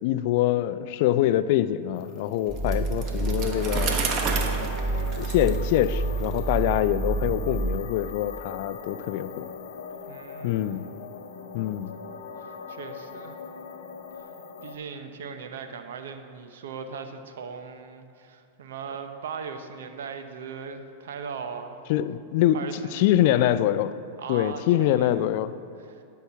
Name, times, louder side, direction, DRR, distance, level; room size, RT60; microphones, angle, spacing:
voice 1, 0.0-3.9 5.0-9.5 10.4-10.9 11.5-11.9 21.9-22.6 22.9-23.9 24.3-25.5, left 13 dB, 60° left, 14 dB, 0.4 m, -24 dB
sound 1, 1.9-14.8, left 5 dB, 75° left, 0.8 m, -41 dB
sound 2, 2.5-7.8, right 3 dB, 5° left, 0.8 m, -28 dB
Bicycle, 2.6-6.4, right 5 dB, 40° right, 1.1 m, -32 dB
voice 2, 10.1-10.8 12.4-13.4 14.2-14.3 14.6-21.8 22.5-23.4 24.2-25.3 25.8-26.0, right 6 dB, 75° right, 7 dB, 0.8 m, -39 dB
10.5 x 5.8 x 5.7 m, 2.4 s
hypercardioid pair, 110°, 0 cm